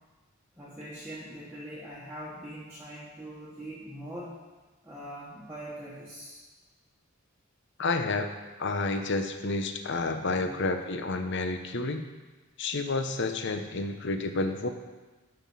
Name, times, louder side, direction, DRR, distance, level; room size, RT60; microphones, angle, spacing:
voice 1, 0.6-4.4 4.8-6.4 9.9-10.6 13.6-13.7 14.1-14.2, equal, 10° right, -8 dB, 1.4 m, -43 dB
voice 2, 7.8-8.3 8.6-12.0 12.6-14.7, left 3 dB, 50° left, 7 dB, 0.8 m, -30 dB
12.0 x 5.8 x 5.6 m, 1.2 s
head